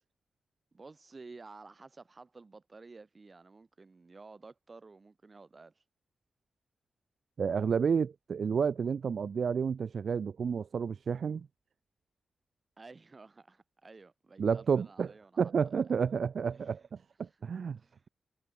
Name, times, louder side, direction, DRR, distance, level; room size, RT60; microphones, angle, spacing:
voice 1, 0.7-5.8 12.8-15.9 16.5-16.8 17.8-18.0, right 3 dB, 25° right, 4.6 m, -53 dB
voice 2, 7.4-11.5 14.4-17.8, right 6 dB, 50° right, 0.7 m, -31 dB
wide cardioid pair, 170°, 0 cm